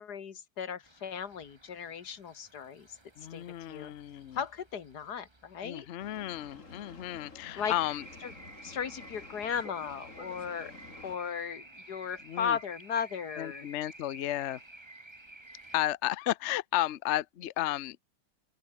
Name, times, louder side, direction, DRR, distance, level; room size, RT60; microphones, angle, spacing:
voice 1, 0.0-2.9 3.3-3.9 4.3-5.9 7.6-7.7 8.2-8.3 8.6-10.7 11.0-13.7, left 7 dB, 55° left, 2.0 m, -36 dB
sound 1, 0.8-15.9, right 2 dB, 15° right, 1.9 m, -53 dB
voice 2, 3.2-4.4 5.6-8.0 12.2-12.6 13.4-14.6 15.7-18.0, left 14 dB, 70° left, 0.6 m, -33 dB
Boat Water vehicle, 6.0-11.2, left 3 dB, 40° left, 3.9 m, -50 dB
open air
omnidirectional pair, 2.1 m